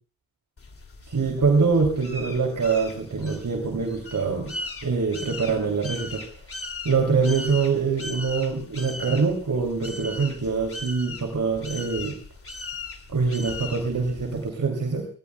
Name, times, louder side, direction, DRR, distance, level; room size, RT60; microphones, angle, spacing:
sound 1, 0.6-14.5, left 3 dB, 30° left, 2.6 m, -39 dB
voice 1, 1.1-4.5 4.8-6.4 6.8-12.2 13.1-15.1, right 4 dB, 40° right, 4 dB, 3.1 m, -24 dB
25.0 x 19.5 x 2.3 m, 0.38 s
cardioid pair, 90°, 44 cm